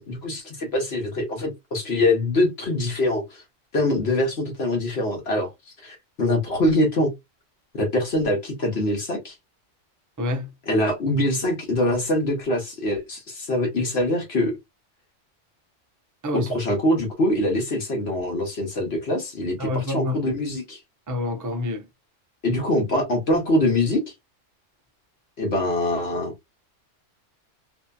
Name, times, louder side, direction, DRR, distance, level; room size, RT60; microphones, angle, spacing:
voice 1, 0.0-3.4 3.7-7.1 7.7-9.3 10.7-14.5 16.3-20.8 22.4-24.0 25.4-26.3, left 1 dB, 60° left, 1.2 m, -24 dB
voice 2, 10.2-10.5 16.2-16.5 19.6-20.2 21.1-21.9, left 1 dB, 30° right, 0.4 m, -27 dB
2.7 x 2.6 x 2.2 m
omnidirectional pair, 1.3 m